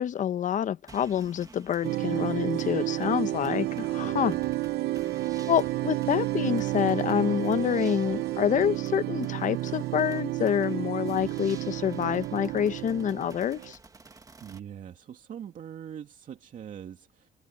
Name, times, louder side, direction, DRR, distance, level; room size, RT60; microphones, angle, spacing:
voice 1, 0.0-4.3 5.5-13.8, left 9 dB, 50° left, 0.9 m, -27 dB
sound 1, 0.9-14.6, right 3 dB, 20° right, 1.8 m, -52 dB
sound 2, 1.8-13.7, right 17 dB, 70° right, 0.8 m, -31 dB
voice 2, 4.0-4.4 14.0-17.3, right 9 dB, 50° right, 2.4 m, -43 dB
cardioid pair, 110°, 17 cm